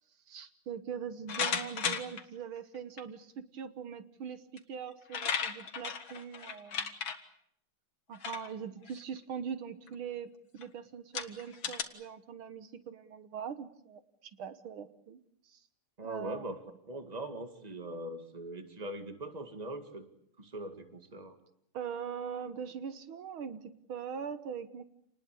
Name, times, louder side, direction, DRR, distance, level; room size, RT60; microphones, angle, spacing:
voice 1, 0.3-6.9 8.1-15.6 16.0-16.5 21.7-24.8, right 7 dB, 75° right, 11 dB, 2.0 m, -42 dB
sound 1, 1.3-2.2 3.0-3.1 4.6-4.7 4.9-7.2 8.1-8.5 8.9-9.2 9.9-10.0 10.6-10.7 11.1-11.8, left 6 dB, 65° left, 2.4 m, -35 dB
voice 2, 16.0-16.6 16.9-20.0 20.4-21.4, right 1 dB, 20° right, 7 dB, 2.1 m, -41 dB
28.0 x 20.0 x 8.4 m, 0.72 s
omnidirectional pair, 2.3 m